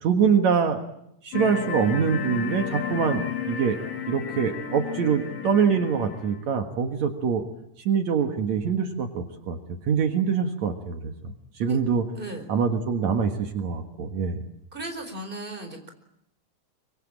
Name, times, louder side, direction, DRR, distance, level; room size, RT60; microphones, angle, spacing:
voice 1, 0.0-0.8 1.2-3.8 4.1-7.4 7.8-9.6 9.9-12.0 12.5-14.4, right 6 dB, 80° right, 5 dB, 1.6 m, -24 dB
sound 1, 1.3-6.4, left 7 dB, 55° left, 2.9 m, -33 dB
voice 2, 14.7-15.9, right 2 dB, 10° right, 5 dB, 3.6 m, -36 dB
25.5 x 25.0 x 8.8 m, 0.78 s
omnidirectional pair, 6.0 m